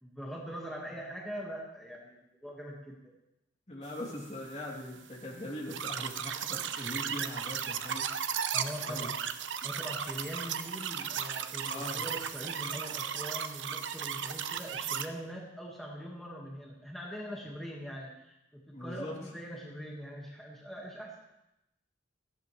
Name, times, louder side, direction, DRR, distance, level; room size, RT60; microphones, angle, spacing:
voice 1, 0.0-3.1 8.5-9.1 9.6-21.2, equal, ahead, -4 dB, 1.7 m, -42 dB
voice 2, 3.7-8.1 8.8-9.1 11.6-12.1 18.7-19.2, left 1 dB, 40° left, -2 dB, 2.8 m, -41 dB
sound 1, 5.7-15.1, right 8 dB, 90° right, 0.7 m, -35 dB
17.5 x 14.0 x 3.2 m, 0.90 s
head